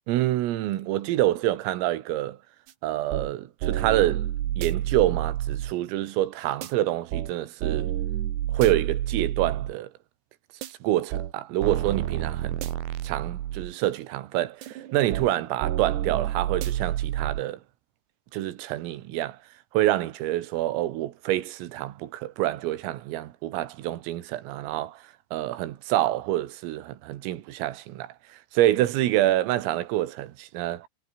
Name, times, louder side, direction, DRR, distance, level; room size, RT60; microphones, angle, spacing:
voice 1, 0.1-2.4 2.8-4.3 4.6-8.0 8.5-9.9 10.7-12.6 13.0-17.6 18.3-19.4 19.7-25.0 25.3-30.9, right 14 dB, 85° right, 4.3 m, -27 dB
sound 1, 2.7-2.8 3.1-3.3 3.6-5.7 6.6-6.7 7.1-7.3 7.6-9.7 10.6-10.7 11.1-11.3 11.6-13.7 14.6-15.3 15.6-17.4, right 12 dB, 65° right, 3.6 m, -29 dB
omnidirectional pair, 5.9 m